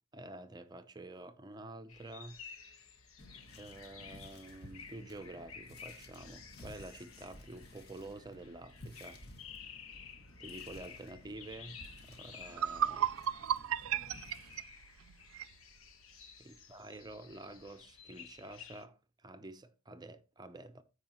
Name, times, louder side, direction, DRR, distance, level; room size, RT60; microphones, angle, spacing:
voice 1, 0.1-2.4 3.6-9.2 10.4-11.8 12.0-13.1 16.4-20.8, right 2 dB, 20° right, 0.6 m, -49 dB
sound 1, 1.9-18.8, left 7 dB, 80° left, 1.2 m, -54 dB
sound 2, 3.2-14.6, left 1 dB, 50° left, 1.8 m, -55 dB
sound 3, 12.0-12.1 12.5-15.5, right 9 dB, 80° right, 0.4 m, -34 dB
14.0 x 4.9 x 3.0 m
head